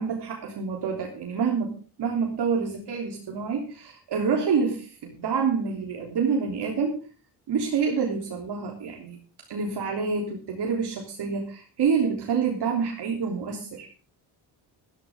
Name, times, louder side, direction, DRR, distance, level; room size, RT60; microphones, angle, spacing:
voice 1, 0.0-7.0 7.5-9.2 9.5-13.9, right 5 dB, 70° right, 1 dB, 3.3 m, -27 dB
13.5 x 13.5 x 3.6 m, 0.36 s
wide cardioid pair, 145°, 42 cm